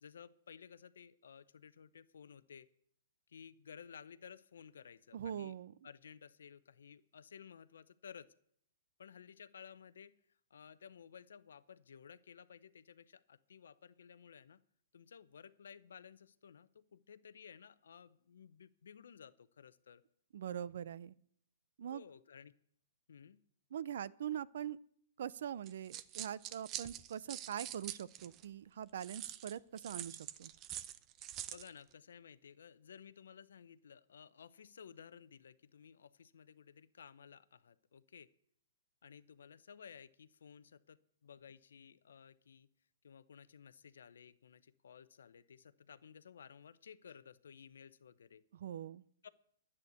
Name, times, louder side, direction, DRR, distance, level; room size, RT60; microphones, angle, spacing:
voice 1, 0.0-2.7 3.3-5.5 5.8-8.3 9.0-10.1 10.5-14.6 14.9-20.0 21.9-22.5 23.1-23.4 31.5-38.3 39.0-42.7 43.0-48.4 49.2-49.3, left 7 dB, 75° left, 16 dB, 0.7 m, -56 dB
voice 2, 5.1-5.7 20.3-21.1 21.8-22.0 23.7-24.8 25.2-30.5 48.5-49.0, right 9 dB, 65° right, 20 dB, 0.5 m, -43 dB
sound 1, 25.7-28.4 29.0-31.7, right 12 dB, 30° right, 0.7 m, -45 dB
11.0 x 8.5 x 8.0 m, 0.68 s
hypercardioid pair, 130°, 0 cm